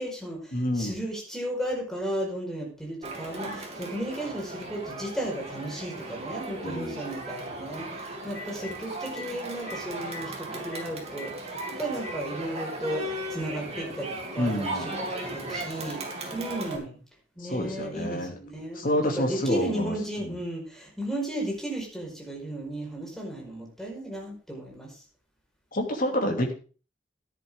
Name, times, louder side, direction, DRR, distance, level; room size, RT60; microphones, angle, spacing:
voice 1, 0.0-11.3 11.8-13.0 13.3-16.0 16.3-17.0 17.4-18.8 19.1-25.0, right 1 dB, ahead, -1 dB, 5.0 m, -34 dB
voice 2, 0.5-1.0 3.4-3.6 6.6-7.0 14.4-14.9 17.4-18.4 18.7-19.9 20.2-20.4 25.7-26.5, equal, 45° left, 2 dB, 2.8 m, -28 dB
Crowd, 3.0-16.8, right 1 dB, 30° right, 3.0 m, -36 dB
Telephone, 5.5-5.6 7.8-7.9 8.2-8.7 9.1-9.3 9.7-9.8 10.0-10.2 10.7-10.8 11.2-11.3 11.6-12.2 13.2-13.3 14.7-14.8, left 4 dB, 65° left, 3.0 m, -41 dB
14.0 x 10.5 x 3.8 m, 0.36 s
head